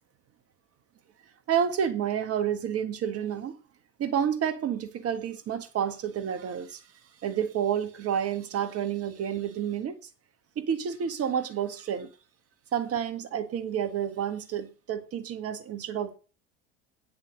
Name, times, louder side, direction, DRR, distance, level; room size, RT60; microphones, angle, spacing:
voice 1, 1.5-3.6 4.0-6.8 7.2-9.9 10.5-12.1 12.7-16.2, right 8 dB, 40° right, 1.6 m, -29 dB
9.6 x 5.9 x 6.7 m
hypercardioid pair, 80°, 37 cm